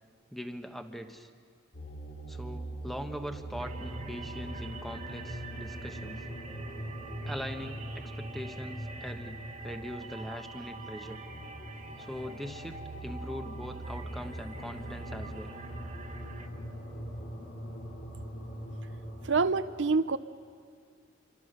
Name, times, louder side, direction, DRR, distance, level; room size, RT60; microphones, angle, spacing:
voice 1, 0.3-1.3 2.3-6.2 7.3-11.2 12.0-15.5, equal, ahead, 6 dB, 1.1 m, -41 dB
sound 1, 1.7-19.6, right 1 dB, 75° left, 6.1 m, -41 dB
sound 2, 3.6-16.5, right 4 dB, 40° right, 1.8 m, -47 dB
voice 2, 19.3-20.2, right 4 dB, 80° right, 12 dB, 0.7 m, -26 dB
27.5 x 24.0 x 6.7 m, 2.2 s
head